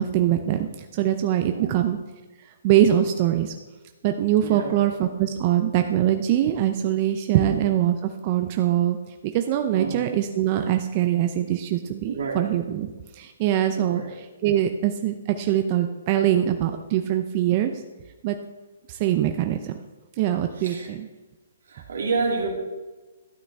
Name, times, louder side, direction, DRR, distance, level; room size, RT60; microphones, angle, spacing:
voice 1, 0.0-2.0 2.6-3.5 4.0-9.0 9.2-17.7 18.2-18.4 18.9-19.7 20.2-21.1, right 11 dB, 40° right, 6 dB, 0.6 m, -23 dB
voice 2, 1.5-1.8 4.4-4.7 7.4-7.5 9.7-10.0 12.1-12.5 13.8-14.1 20.6-20.9 21.7-22.5, right 4 dB, 80° right, 0 dB, 2.8 m, -29 dB
12.5 x 8.5 x 3.5 m, 1.2 s
hypercardioid pair, 145°, 0 cm